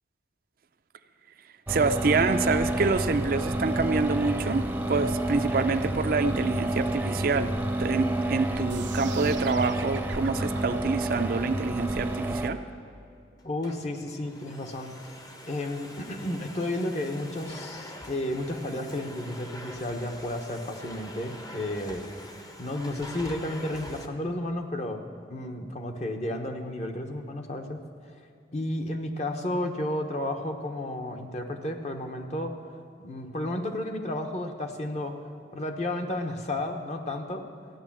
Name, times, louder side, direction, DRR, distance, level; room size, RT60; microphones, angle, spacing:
sound 1, 1.7-12.5, right 1 dB, 10° right, 0.7 m, -29 dB
voice 1, 1.7-7.5 7.8-12.6, right 4 dB, 50° right, 9 dB, 0.5 m, -27 dB
sound 2, 8.7-14.7, right 8 dB, 90° right, 0.7 m, -44 dB
voice 2, 13.4-15.1 15.5-22.1 22.3-25.0 25.3-28.1 28.5-32.5 33.0-35.1 35.5-37.4, left 1 dB, 40° left, 5 dB, 1.0 m, -32 dB
Domestic sounds home sounds, 13.4-24.1, left 1 dB, 20° left, 0.8 m, -45 dB
14.5 x 9.4 x 7.3 m, 2.4 s
head